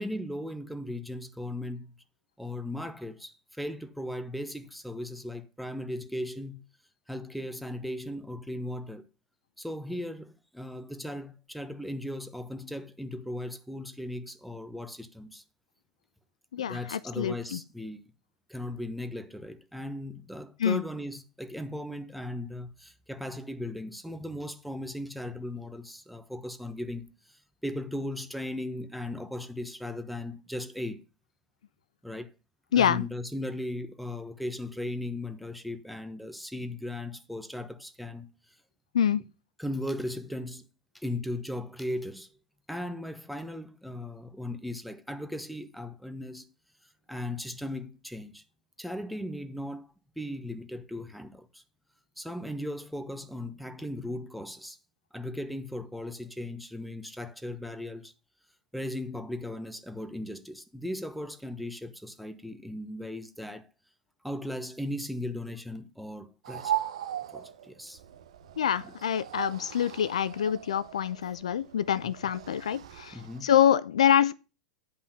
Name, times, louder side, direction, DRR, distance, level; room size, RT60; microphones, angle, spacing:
voice 1, 0.0-1.9 2.4-6.6 7.1-9.1 9.6-15.4 16.6-18.1 18.5-31.0 32.0-32.3 32.7-38.3 39.6-40.7 40.9-42.4 42.7-46.5 47.1-48.4 48.8-49.9 50.2-51.6 52.2-54.8 55.1-58.1 58.7-63.7 64.2-66.8 67.3-68.0 68.8-68.9 73.1-73.5, left 1 dB, ahead, 1.0 m, -37 dB
voice 2, 16.5-17.6 20.6-20.8 32.7-33.0 38.9-39.2 68.6-74.3, left 9 dB, 65° left, 0.5 m, -26 dB
sound 1, 66.4-73.4, right 11 dB, 60° right, 1.0 m, -38 dB
9.9 x 5.5 x 5.5 m
figure-of-eight pair, 95°, 4 cm